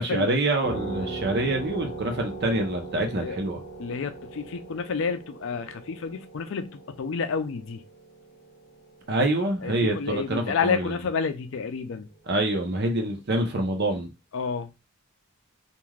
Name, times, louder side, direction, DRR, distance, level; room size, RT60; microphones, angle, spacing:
voice 1, 0.0-3.6 9.1-10.9 12.3-14.1, right 1 dB, 50° right, 0.8 m, -26 dB
sound 1, 0.6-9.8, right 3 dB, 40° left, 0.9 m, -39 dB
voice 2, 3.8-7.8 9.6-12.1 14.3-14.7, left 5 dB, 65° left, 0.4 m, -30 dB
3.2 x 2.6 x 2.3 m
head